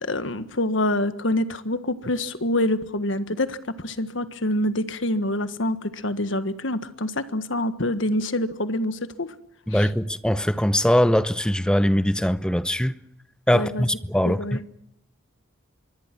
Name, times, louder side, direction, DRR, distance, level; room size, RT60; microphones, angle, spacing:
voice 1, 0.0-9.3 9.7-9.9 13.5-13.9 14.2-14.6, left 1 dB, 65° left, 1.5 m, -26 dB
voice 2, 9.7-12.9 13.5-14.6, equal, 5° left, 0.8 m, -21 dB
26.0 x 22.5 x 6.1 m
head